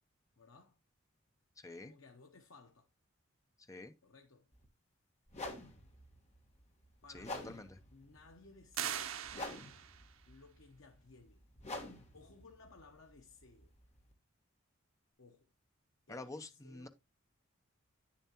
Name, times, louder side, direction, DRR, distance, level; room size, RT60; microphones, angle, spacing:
voice 1, 0.4-0.8 1.8-2.9 4.0-4.5 7.0-9.2 10.3-11.4 12.1-13.7 15.2-15.5 16.1-16.9, left 3 dB, 70° left, 0.9 m, -59 dB
voice 2, 1.6-1.9 3.7-3.9 7.1-7.8 16.1-16.9, left 2 dB, 15° left, 0.6 m, -48 dB
sound 1, 4.5-4.7 5.3-14.1, left 2 dB, 35° left, 1.6 m, -49 dB
sound 2, 8.7-10.1, right 9 dB, 85° right, 0.7 m, -40 dB
9.4 x 7.0 x 2.9 m
head